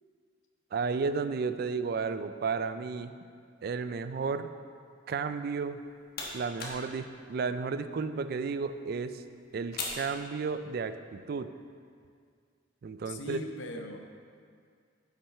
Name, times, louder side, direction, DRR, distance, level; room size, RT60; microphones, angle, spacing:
voice 1, 0.7-3.1 3.6-4.5 5.1-5.8 6.3-9.2 9.5-11.5 12.8-13.4, right 5 dB, 55° right, 11 dB, 0.3 m, -33 dB
sound 1, 5.6-10.9, left 3 dB, 55° left, 1.3 m, -44 dB
voice 2, 13.1-14.0, left 2 dB, 75° left, 4 dB, 0.7 m, -39 dB
8.5 x 5.9 x 4.7 m, 2.2 s
head